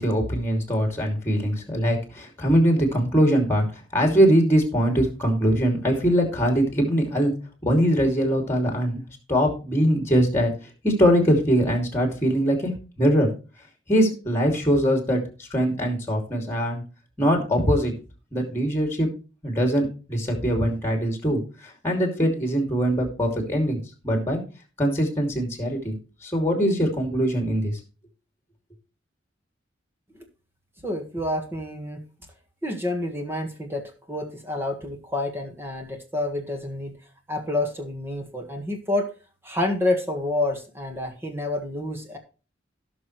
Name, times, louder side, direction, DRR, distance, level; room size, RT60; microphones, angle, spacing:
voice 1, 0.0-3.7 3.9-7.3 7.6-9.0 9.3-10.5 10.8-13.3 13.9-16.8 17.2-17.9 18.3-19.1 19.4-23.8 24.0-24.4 24.8-25.9 26.2-27.8, equal, 15° left, 4 dB, 2.7 m, -22 dB
voice 2, 30.8-32.0 32.6-36.9 37.3-39.1 39.4-42.2, left 1 dB, 10° right, 3 dB, 1.7 m, -28 dB
17.5 x 6.1 x 3.2 m, 0.33 s
head